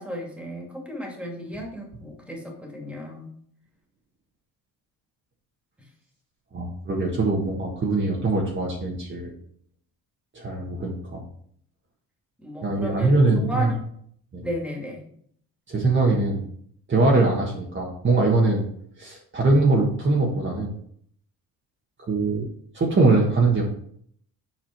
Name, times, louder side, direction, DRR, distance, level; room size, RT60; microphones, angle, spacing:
voice 1, 0.0-3.3 12.4-13.8 14.4-15.1, equal, 5° right, 0 dB, 2.3 m, -34 dB
voice 2, 6.5-9.3 10.3-11.2 12.6-13.7 14.3-14.4 15.7-16.4 16.9-18.6 19.0-20.7 22.1-22.4 22.7-23.6, right 3 dB, 30° right, -2 dB, 1.5 m, -22 dB
7.6 x 4.8 x 4.5 m, 0.65 s
cardioid pair, 110°, 37 cm